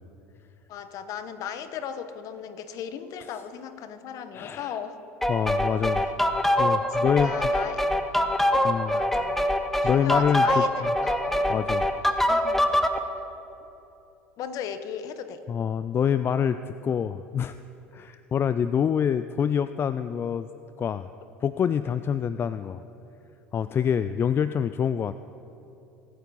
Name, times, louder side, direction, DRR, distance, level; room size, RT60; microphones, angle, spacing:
voice 1, 0.7-5.0 6.0-6.1 6.9-7.9 8.9-9.5 9.8-11.6 12.3-12.8 14.4-15.4, left 8 dB, 55° left, 11 dB, 1.1 m, -37 dB
voice 2, 4.3-4.7 5.3-6.1 6.6-7.3 8.6-9.0 9.8-10.6 11.5-11.8 15.5-17.6 17.9-20.5 20.8-21.1 21.4-22.8 23.5-25.2, left 8 dB, 35° left, 13 dB, 0.4 m, -26 dB
sound 1, 5.2-13.0, equal, 5° left, 1.0 m, -24 dB
23.0 x 9.7 x 4.2 m, 3.0 s
hypercardioid pair, 75°, 7 cm